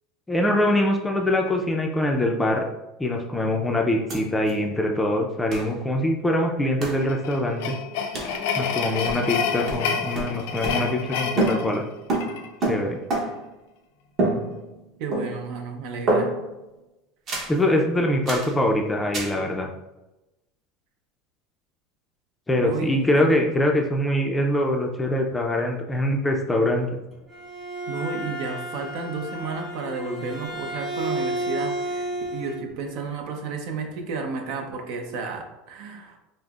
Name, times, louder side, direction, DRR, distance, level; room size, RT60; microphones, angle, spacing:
voice 1, 0.3-2.7 3.0-7.8 8.6-11.8 12.6-13.0 17.5-19.7 22.5-27.0, left 1 dB, 10° left, 2 dB, 0.4 m, -23 dB
sound 1, 4.1-4.2 4.5-4.6 5.5-5.7 6.8-7.1 8.1-8.4 9.1-9.4 9.7-11.1 11.4-13.5 14.2-14.8 15.1-15.6 16.1-16.6 17.3-17.6 18.3-18.6 19.1-19.4, right 2 dB, 40° right, 0.9 m, -27 dB
sound 2, 7.0-12.5, left 7 dB, 80° left, 0.4 m, -29 dB
voice 2, 15.0-16.3 22.6-23.2 27.9-36.2, right 4 dB, 65° right, 4 dB, 0.6 m, -32 dB
Bowed string instrument, 27.1-32.6, right 1 dB, 20° right, 1.4 m, -31 dB
5.2 x 2.0 x 2.4 m, 0.98 s
supercardioid pair, 130°, 0 cm